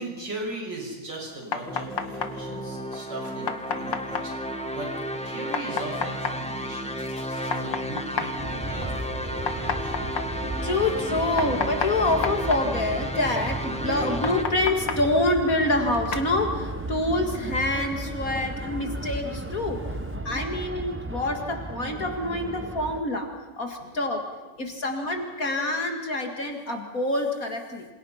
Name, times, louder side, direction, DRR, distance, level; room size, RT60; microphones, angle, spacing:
voice 1, 0.0-4.9 5.2-7.0 7.5-10.1 23.8-24.0 24.3-24.7, right 2 dB, 75° right, -1 dB, 7.3 m, -38 dB
sound 1, 1.1-20.2, left 6 dB, 85° left, 2.2 m, -36 dB
sound 2, 1.6-14.4, equal, 5° left, 1.5 m, -33 dB
sound 3, 8.4-23.0, right 1 dB, 10° right, 0.6 m, -34 dB
voice 2, 10.6-19.8 20.2-23.3 23.6-24.3 24.6-27.9, left 2 dB, 50° left, 4 dB, 2.5 m, -26 dB
27.5 x 27.5 x 5.8 m, 1.2 s
omnidirectional pair, 1.9 m